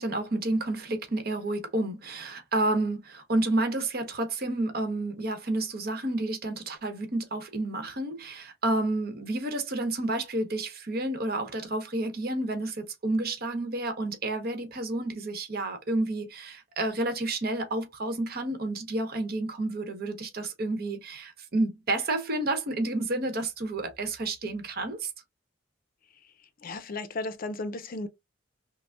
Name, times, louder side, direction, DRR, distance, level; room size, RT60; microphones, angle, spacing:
voice 1, 0.0-25.1, right 2 dB, 55° right, 1.0 m, -30 dB
voice 2, 26.6-28.1, left 2 dB, 50° left, 0.5 m, -34 dB
5.9 x 2.1 x 2.4 m
head